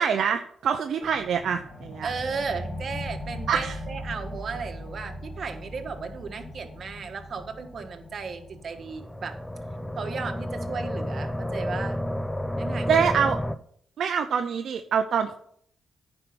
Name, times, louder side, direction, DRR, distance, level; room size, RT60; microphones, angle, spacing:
voice 1, 0.0-2.1 3.5-3.8 12.9-13.4 14.0-15.3, right 7 dB, 75° right, 7 dB, 0.6 m, -25 dB
sound 1, 1.0-12.1, left 1 dB, 35° left, 2.1 m, -40 dB
voice 2, 2.0-9.3 10.0-12.0 12.6-13.0, right 5 dB, 60° right, 6 dB, 1.5 m, -35 dB
sound 2, 8.7-13.6, equal, 10° left, 0.6 m, -31 dB
10.0 x 5.5 x 6.1 m, 0.65 s
cardioid pair, 70°, 0 cm